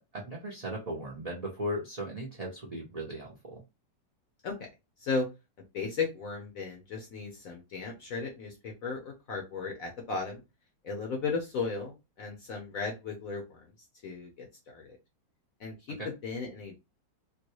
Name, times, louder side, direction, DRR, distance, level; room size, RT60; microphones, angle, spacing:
voice 1, 0.0-3.6 16.0-16.1, equal, 40° right, -1 dB, 0.5 m, -37 dB
voice 2, 5.7-10.4 10.8-13.6 14.0-15.0 15.6-16.8, left 4 dB, 60° left, 2 dB, 1.0 m, -35 dB
3.7 x 2.3 x 3.0 m, 0.25 s
omnidirectional pair, 2.0 m